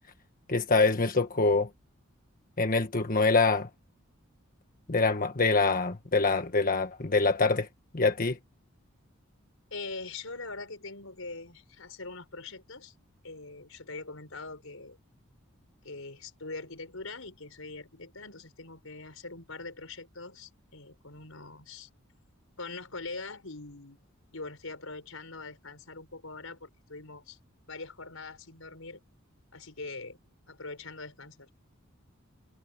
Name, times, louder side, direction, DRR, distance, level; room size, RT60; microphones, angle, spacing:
voice 1, 0.5-1.7 2.6-3.7 4.9-7.7 7.9-8.4, left 3 dB, 40° left, 1.4 m, -25 dB
voice 2, 9.7-12.9 13.2-15.0 15.8-21.9 22.6-24.0 24.3-27.4 27.7-29.0 29.5-30.2 30.5-31.5, left 3 dB, 75° left, 5.5 m, -42 dB
head